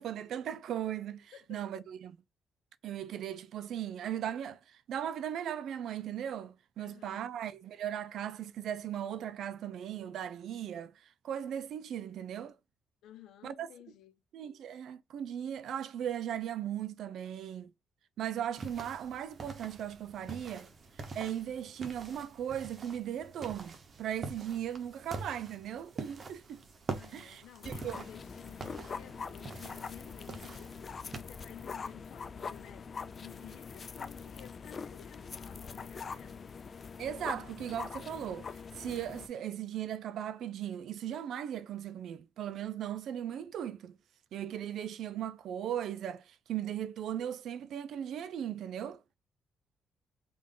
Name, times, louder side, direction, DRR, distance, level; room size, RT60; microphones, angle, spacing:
voice 1, 0.0-2.2 2.8-12.6 13.4-13.7 14.3-17.7 18.2-20.7 21.2-26.6 27.1-28.1 37.0-44.0 44.3-49.0, right 10 dB, 70° right, 0.4 m, -38 dB
voice 2, 1.3-1.9 6.8-7.3 13.0-14.1 27.0-32.8 33.1-36.4, left 11 dB, 90° left, 0.7 m, -54 dB
sound 1, 18.6-31.2, right 4 dB, 35° right, 0.7 m, -45 dB
sound 2, 27.6-39.3, left 5 dB, 35° left, 0.3 m, -43 dB
3.7 x 2.5 x 3.6 m
cardioid pair, 140°, 0 cm